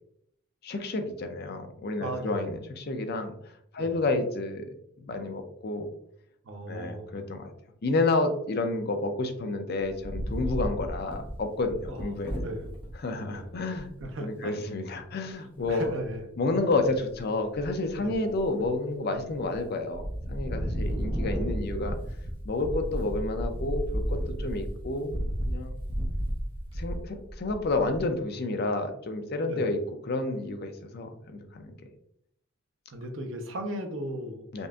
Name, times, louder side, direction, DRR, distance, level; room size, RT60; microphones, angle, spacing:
voice 1, 0.6-4.7 5.0-5.9 6.7-7.5 7.8-12.5 13.0-13.9 14.2-15.9 16.4-22.0 22.4-25.2 25.4-25.8 26.8-29.8 30.1-31.7 34.5-34.7, left 2 dB, 50° left, 7 dB, 0.5 m, -30 dB
voice 2, 2.0-2.5 3.8-4.0 6.4-7.2 11.9-12.7 13.3-13.5 14.0-14.5 15.7-16.3 16.7-16.8 18.0-18.2 20.6-20.8 24.3-24.6 29.5-29.7 32.9-34.7, right 1 dB, 65° right, 4 dB, 0.7 m, -37 dB
Wind, 9.8-12.9 13.5-13.6 13.7-14.1 15.6-16.2 16.7-17.2 17.5-18.7 19.1-19.6 19.9-28.1, equal, 25° right, 0.9 m, -33 dB
5.3 x 2.5 x 2.3 m, 0.73 s
head